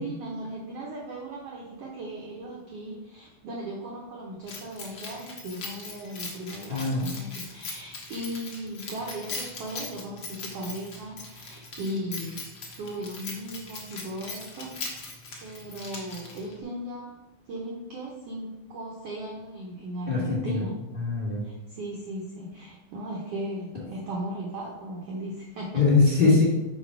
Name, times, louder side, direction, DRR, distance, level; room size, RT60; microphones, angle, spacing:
voice 1, 0.0-12.4 12.8-14.8 15.4-17.1 17.5-20.7 21.4-25.8, right 1 dB, 75° right, -2 dB, 1.4 m, -37 dB
Keys jangling, 4.5-16.6, left 3 dB, 60° left, 1.2 m, -40 dB
voice 2, 6.7-7.0 20.1-20.6 21.0-21.4 25.7-26.4, left 3 dB, 30° left, -5 dB, 0.9 m, -22 dB
6.2 x 4.8 x 4.6 m, 0.99 s
omnidirectional pair, 4.0 m